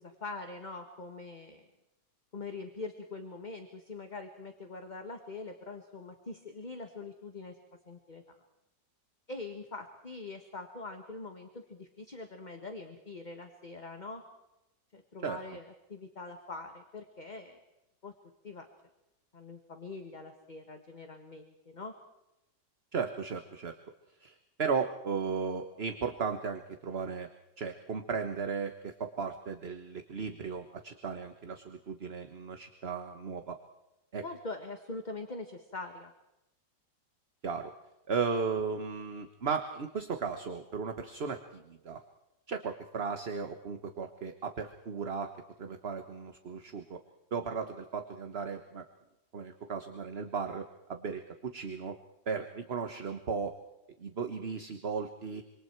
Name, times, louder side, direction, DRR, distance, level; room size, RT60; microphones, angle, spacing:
voice 1, 0.0-1.6 2.3-7.6 7.8-8.3 9.3-14.2 14.9-17.6 18.0-18.1 18.4-18.7 19.3-22.0 34.2-36.1, left 3 dB, 25° left, 5 dB, 1.7 m, -43 dB
voice 2, 22.9-23.7 24.2-27.3 27.6-33.6 34.1-34.2 37.4-37.7 38.1-42.0 42.5-45.3 45.6-47.0 47.3-48.8 49.3-52.0 52.3-53.5 54.0-55.4, right 5 dB, 35° right, 6 dB, 1.4 m, -35 dB
27.0 x 26.0 x 4.7 m, 0.94 s
omnidirectional pair, 2.0 m